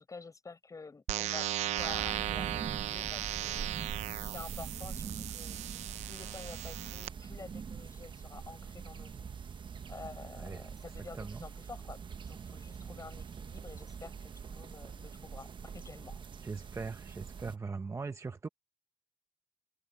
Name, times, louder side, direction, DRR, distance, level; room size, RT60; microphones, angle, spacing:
voice 1, 0.0-3.7 4.2-5.6 6.1-9.3 9.9-12.0 12.3-16.2, left 4 dB, 30° left, 6.8 m, -49 dB
sound 1, 1.1-7.1, right 13 dB, 85° right, 0.8 m, -37 dB
sound 2, 1.8-17.6, right 6 dB, 45° right, 1.2 m, -44 dB
voice 2, 11.1-11.5 16.4-18.5, right 4 dB, 25° right, 0.9 m, -40 dB
cardioid pair, 85°, 11 cm